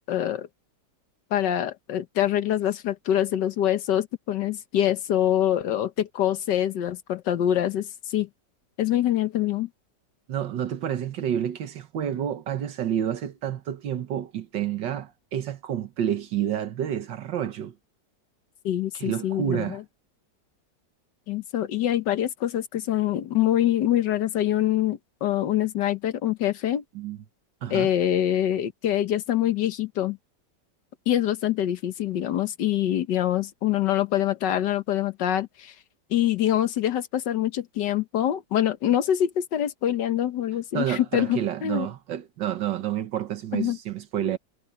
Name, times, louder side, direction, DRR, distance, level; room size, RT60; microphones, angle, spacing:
voice 1, 0.1-0.5 1.3-8.3 8.8-9.7 18.6-19.8 21.3-26.8 27.7-30.2 31.1-35.7 36.1-41.9 43.5-43.8, left 11 dB, 80° left, 1.7 m, -25 dB
voice 2, 10.3-17.7 18.9-19.8 27.0-27.2 27.6-27.9 40.7-44.4, right 10 dB, 85° right, 1.8 m, -29 dB
omnidirectional pair, 1.9 m